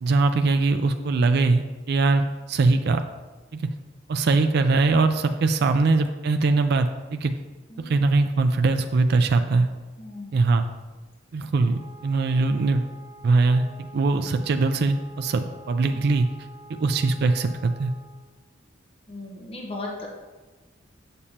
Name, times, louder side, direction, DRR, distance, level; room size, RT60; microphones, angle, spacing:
voice 1, 0.0-3.0 3.5-3.6 4.1-7.3 7.8-9.7 10.3-10.7 11.3-12.8 13.2-13.6 13.9-16.3 16.8-17.9, right 3 dB, 55° right, 7 dB, 0.4 m, -21 dB
voice 2, 1.0-1.3 7.7-8.0 10.0-10.5 15.9-16.0 19.1-20.1, left 2 dB, 30° left, -2 dB, 0.9 m, -38 dB
Wind instrument woodwind instrument, 11.6-18.3, right 2 dB, 25° right, 1.9 m, -48 dB
7.1 x 6.8 x 2.8 m, 1.2 s
head